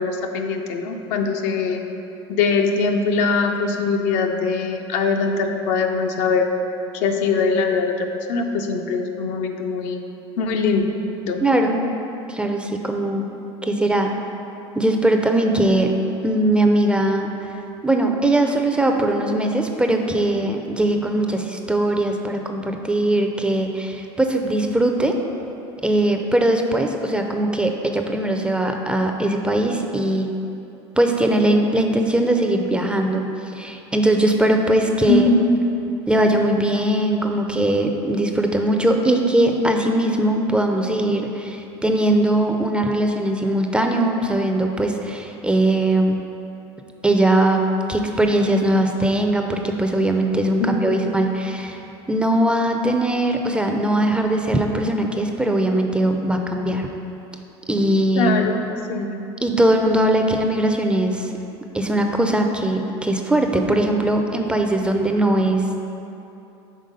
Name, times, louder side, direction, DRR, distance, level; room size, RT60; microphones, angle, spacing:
voice 1, 0.0-1.8 2.3-6.5 6.9-7.9 8.3-10.0 10.4-10.8 11.2-11.4 35.1-35.6 50.6-51.1 58.2-59.3, left 4 dB, 65° left, 4 dB, 0.5 m, -22 dB
voice 2, 11.4-11.8 12.3-13.3 13.6-14.1 14.7-15.9 16.2-17.3 17.8-25.1 25.8-30.3 31.0-33.2 33.5-35.2 36.1-46.2 47.0-47.6 47.9-51.8 52.1-56.9 57.7-58.3 59.4-61.3 61.7-65.8, right 1 dB, 5° right, 3 dB, 0.4 m, -20 dB
5.5 x 3.5 x 5.1 m, 2.9 s
hypercardioid pair, 95°, 14 cm